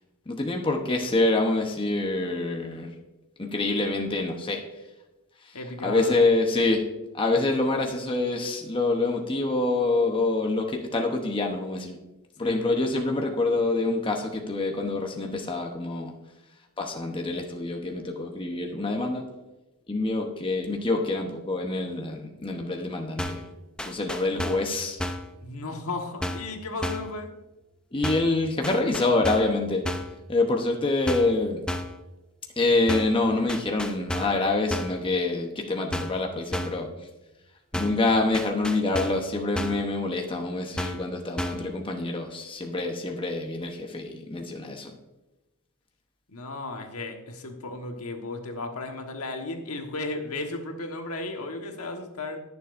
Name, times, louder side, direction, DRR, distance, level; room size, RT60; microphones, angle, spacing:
voice 1, 0.3-2.9 3.4-4.6 5.8-6.8 7.1-12.0 12.4-16.1 16.8-19.2 19.9-23.4 23.8-25.0 27.9-29.8 30.3-31.6 32.6-36.9 37.7-44.9, left 2 dB, 25° left, 2 dB, 0.9 m, -26 dB
voice 2, 5.5-6.3 12.4-12.9 25.4-27.3 46.3-52.4, left 2 dB, 80° left, 4 dB, 1.4 m, -35 dB
sound 1, 23.2-23.5 23.8-24.7 25.0-25.3 26.2-26.5 26.8-27.1 28.0-28.4 28.6-29.6 29.8-30.2 31.1-31.4 31.7-32.0 32.9-33.2 33.5-34.4 34.7-35.0 35.9-36.2 36.5-36.9 37.7-38.1 38.3-39.3 39.6-39.9 40.8-41.1 41.4-41.7, left 1 dB, 5° left, 0.6 m, -32 dB
20.0 x 7.0 x 2.6 m, 1.0 s
head